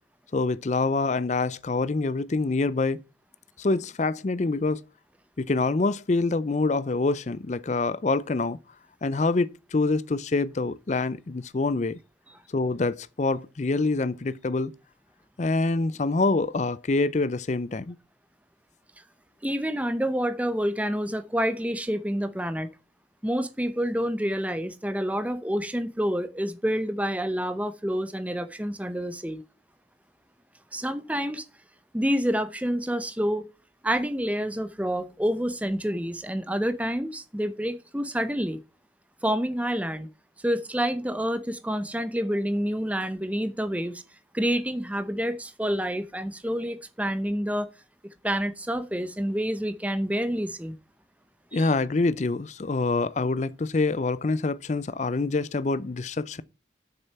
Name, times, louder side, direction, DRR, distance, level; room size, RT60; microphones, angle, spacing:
voice 1, 0.3-3.0 3.6-4.8 5.4-8.6 9.0-12.0 12.5-14.7 15.4-18.0 51.5-56.4, left 3 dB, 35° left, 0.5 m, -26 dB
voice 2, 19.4-22.7 23.2-29.4 30.7-31.4 31.9-33.5 33.8-38.6 39.2-40.1 40.4-44.0 44.3-47.7 48.2-50.8 51.5-51.7, equal, 5° right, 0.7 m, -28 dB
7.2 x 6.8 x 5.7 m
head